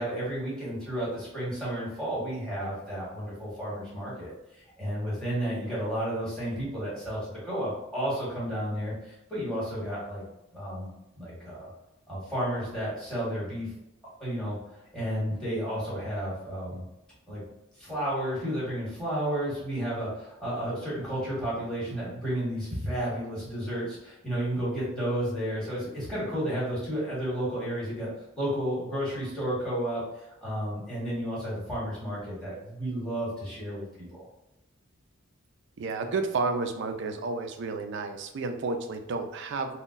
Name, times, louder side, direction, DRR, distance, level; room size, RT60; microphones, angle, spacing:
voice 1, 0.0-10.2 10.5-11.7 12.1-13.7 14.2-14.6 14.9-16.9 17.3-17.4 17.8-28.1 28.3-34.0, equal, 5° left, -8 dB, 1.5 m, -32 dB
voice 2, 35.8-39.8, right 3 dB, 60° right, 6 dB, 0.4 m, -31 dB
3.7 x 2.2 x 2.5 m, 0.92 s
head